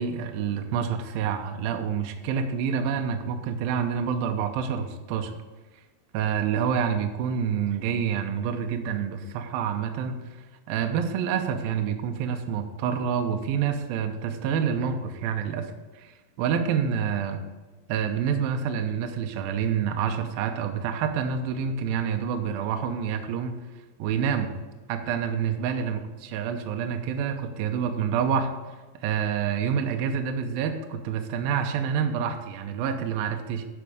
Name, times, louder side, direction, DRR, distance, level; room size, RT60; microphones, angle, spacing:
voice 1, 0.0-5.4 6.1-10.2 10.7-15.7 16.0-17.4 17.9-23.6 24.0-24.6 24.9-28.5 29.0-33.7, right 7 dB, 90° right, 6 dB, 2.1 m, -27 dB
10.5 x 5.8 x 4.9 m, 1.2 s
omnidirectional pair, 5.3 m